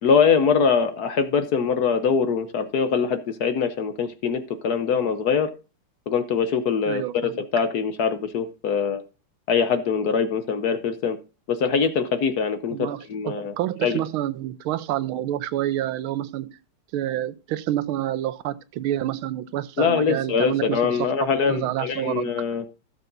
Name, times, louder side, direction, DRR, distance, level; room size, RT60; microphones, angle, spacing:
voice 1, 0.0-5.5 6.1-7.0 7.5-9.0 9.5-11.2 11.5-12.8 13.1-13.5 13.8-14.0 19.8-22.6, left 6 dB, 60° left, 1.1 m, -23 dB
voice 2, 6.9-7.4 12.7-13.0 13.3-16.6 16.9-21.1 21.5-22.3, right 13 dB, 85° right, 1.5 m, -28 dB
15.5 x 6.9 x 2.6 m
omnidirectional pair, 2.2 m